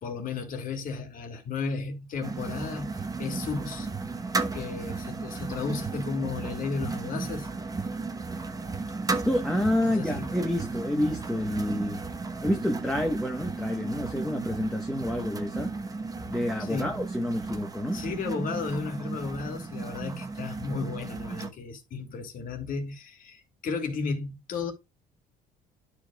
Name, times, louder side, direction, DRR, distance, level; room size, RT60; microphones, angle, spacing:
voice 1, 0.0-3.9 4.5-7.5 9.8-10.3 16.6-17.0 17.9-24.7, left 4 dB, 55° left, 2.5 m, -34 dB
sound 1, 2.2-21.5, right 3 dB, 20° right, 1.0 m, -34 dB
voice 2, 9.2-12.0 12.4-15.7 16.3-18.0, left 1 dB, ahead, 1.2 m, -28 dB
12.0 x 4.8 x 2.3 m
cardioid pair, 110°, 17 cm